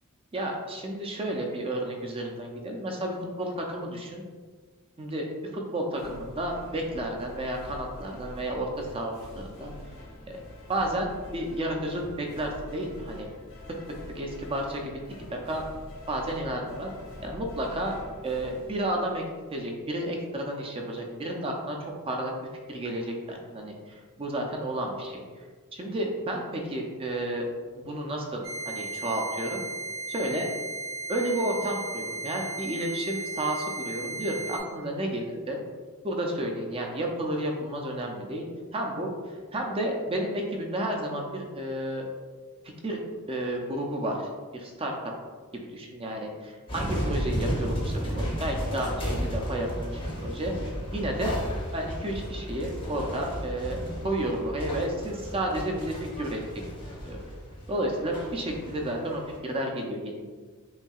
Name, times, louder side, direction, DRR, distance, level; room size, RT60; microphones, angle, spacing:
voice 1, 0.3-4.2 5.0-5.3 5.5-9.7 10.3-10.4 10.7-13.3 14.1-15.0 15.3-15.6 16.1-16.9 17.2-17.9 18.2-19.2 19.5-22.3 22.7-25.2 25.7-27.5 27.8-29.6 30.1-30.5 31.1-35.6 36.0-38.5 38.7-42.1 42.8-43.0 43.3-44.9 45.5-51.4 51.7-53.8 54.0-56.4 56.8-57.2 57.7-60.3, right 1 dB, 25° right, 1 dB, 0.4 m, -31 dB
sound 1, 5.9-19.6, left 1 dB, 65° left, 1.0 m, -45 dB
sound 2, 28.4-34.6, right 3 dB, 70° right, 1.3 m, -36 dB
sound 3, 46.7-59.4, equal, 25° left, 0.7 m, -33 dB
5.4 x 2.7 x 2.4 m, 1.5 s
head